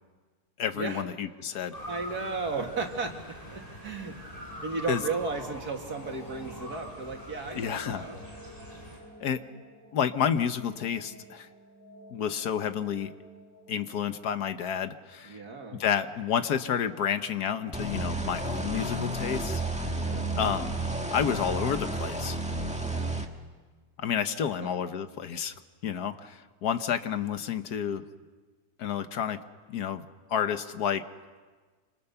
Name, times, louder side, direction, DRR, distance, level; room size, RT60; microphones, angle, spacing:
voice 1, 0.6-1.8 4.9-5.0 7.5-8.1 9.2-9.4 9.9-11.5 12.1-13.1 13.7-15.4 15.7-19.6 20.4-22.4 24.0-25.5 25.8-28.0 28.8-29.4 29.7-30.0 30.3-31.0, left 8 dB, 80° left, 10 dB, 1.6 m, -30 dB
sound 1, 1.3-16.1, right 1 dB, 50° right, 6.2 m, -53 dB
Motor vehicle (road) / Siren, 1.7-9.0, left 1 dB, 25° left, 6.9 m, -43 dB
voice 2, 1.9-4.1 4.6-8.2 15.2-15.8 20.0-20.2 22.9-23.1 24.4-24.8, right 4 dB, 75° right, 3 dB, 2.7 m, -35 dB
sound 2, 17.7-23.2, right 2 dB, 5° right, 1.6 m, -31 dB
28.0 x 26.0 x 6.9 m, 1.4 s
omnidirectional pair, 1.6 m